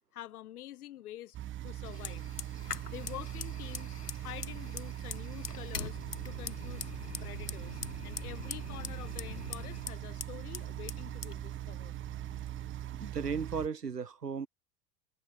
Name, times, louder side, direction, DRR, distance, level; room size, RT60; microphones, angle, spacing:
voice 1, 0.1-1.4 1.6-2.2 2.9-6.0 6.3-6.9 7.2-11.9, left 13 dB, 70° left, 6.9 m, -47 dB
sound 1, 1.3-13.7, right 13 dB, 25° right, 0.7 m, -41 dB
Fire, 1.8-13.7, left 6 dB, 85° left, 1.6 m, -44 dB
voice 2, 13.0-14.5, right 6 dB, 90° right, 1.4 m, -35 dB
figure-of-eight pair, 75°, 46 cm